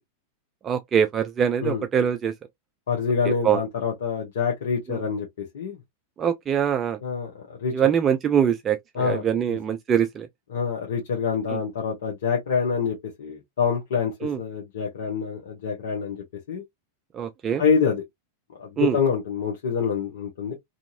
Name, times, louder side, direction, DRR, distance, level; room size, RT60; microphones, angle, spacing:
voice 1, 0.6-2.3 3.4-3.6 4.9-5.0 6.2-7.0 7.7-10.3 14.2-14.4 17.1-17.6 18.8-19.0, right 8 dB, 25° right, 0.3 m, -23 dB
voice 2, 2.9-5.8 7.0-7.7 8.9-9.6 10.5-16.6 17.6-18.0 18.6-20.5, left 6 dB, 60° left, 0.8 m, -26 dB
2.7 x 2.4 x 2.7 m
figure-of-eight pair, 90°, 0 cm